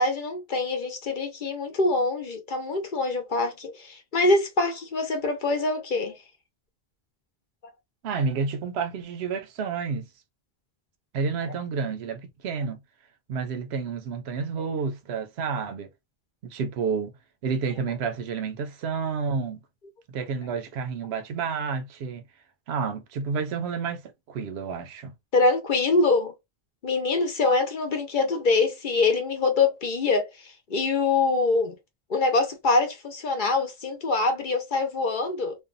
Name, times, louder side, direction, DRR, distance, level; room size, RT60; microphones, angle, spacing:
voice 1, 0.0-6.1 25.3-26.3 26.8-31.7 32.1-35.6, left 3 dB, 55° left, 0.8 m, -24 dB
voice 2, 8.0-10.1 11.1-12.8 13.3-15.9 16.4-17.1 17.4-19.6 20.1-22.2 22.7-25.1, right 5 dB, 80° right, 0.8 m, -30 dB
2.6 x 2.2 x 2.4 m
omnidirectional pair, 1.1 m